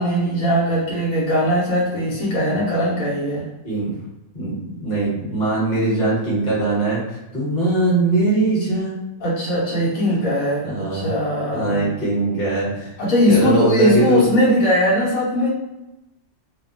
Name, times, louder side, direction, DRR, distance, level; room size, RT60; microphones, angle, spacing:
voice 1, 0.0-3.5 9.2-11.8 13.0-15.5, equal, 90° left, -5 dB, 1.2 m, -19 dB
voice 2, 3.6-4.0 4.3-9.0 10.6-11.1 11.5-12.9 13.3-14.2, right 2 dB, 35° left, -7 dB, 1.1 m, -21 dB
2.8 x 2.1 x 2.5 m, 0.92 s
omnidirectional pair, 1.4 m